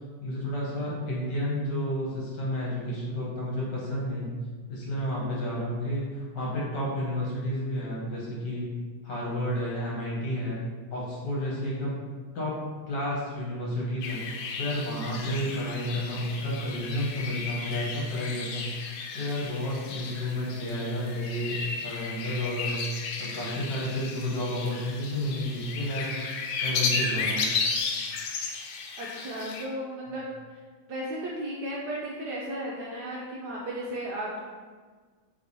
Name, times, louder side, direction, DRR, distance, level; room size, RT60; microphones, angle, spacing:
voice 1, 0.2-4.3 4.7-8.7 9.0-10.6 10.9-12.0 12.3-12.5 12.9-14.2 14.6-18.6 19.1-22.8 23.2-26.1 26.6-27.5, left 1 dB, 60° left, -6 dB, 1.7 m, -31 dB
sound 1, 14.0-29.6, left 4 dB, 75° left, 1.3 m, -34 dB
voice 2, 29.0-30.6 30.9-34.4, right 1 dB, 70° right, -4 dB, 1.0 m, -35 dB
3.4 x 3.3 x 4.1 m, 1.5 s
omnidirectional pair, 2.2 m